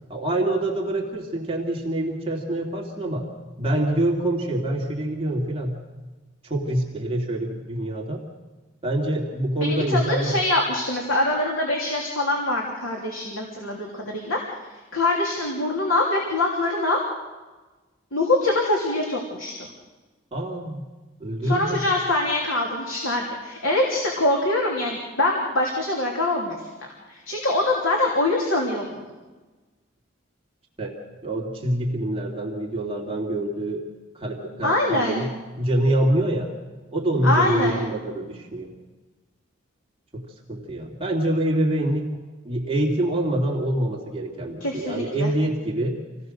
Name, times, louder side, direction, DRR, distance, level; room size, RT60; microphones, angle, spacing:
voice 1, 0.1-3.3 3.6-5.8 6.4-8.2 8.8-10.4 20.3-20.8 21.2-21.8 30.8-33.9 34.1-36.5 36.9-38.7 40.1-42.1 42.4-46.0, right 1 dB, 25° right, -2 dB, 2.6 m, -25 dB
voice 2, 9.7-14.4 14.9-17.0 18.1-19.7 21.4-26.6 27.1-29.0 34.6-35.2 37.2-37.8 44.6-45.3, left 2 dB, 80° left, -1 dB, 3.2 m, -24 dB
27.0 x 17.5 x 6.5 m, 1.2 s
head